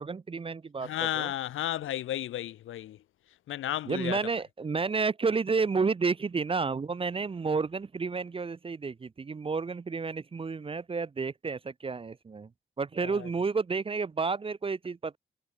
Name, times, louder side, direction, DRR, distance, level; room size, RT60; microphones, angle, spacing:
voice 1, 0.0-1.3 3.9-12.5 12.8-15.2, right 4 dB, 25° right, 0.5 m, -31 dB
voice 2, 0.8-3.0 3.5-4.2 13.0-13.3, left 13 dB, 75° left, 0.6 m, -33 dB
supercardioid pair, 45°, 21 cm